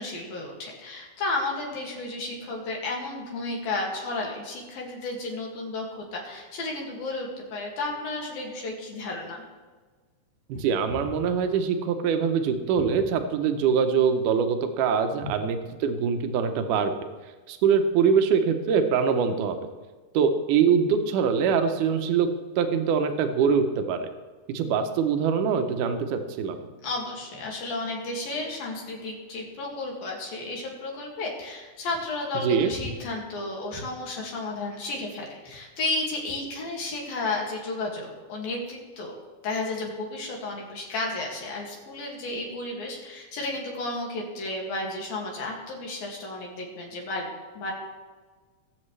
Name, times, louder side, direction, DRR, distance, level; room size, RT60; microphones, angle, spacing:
voice 1, 0.0-9.4 10.9-11.0 15.2-15.3 26.8-39.2 39.4-47.3 47.6-47.7, left 2 dB, 75° left, -1 dB, 4.0 m, -33 dB
voice 2, 10.5-16.9 17.5-19.6 20.1-22.3 22.6-24.1 24.5-26.6 32.4-32.7, right 6 dB, 70° right, 7 dB, 2.2 m, -23 dB
20.0 x 7.8 x 3.3 m, 1.4 s
omnidirectional pair, 4.1 m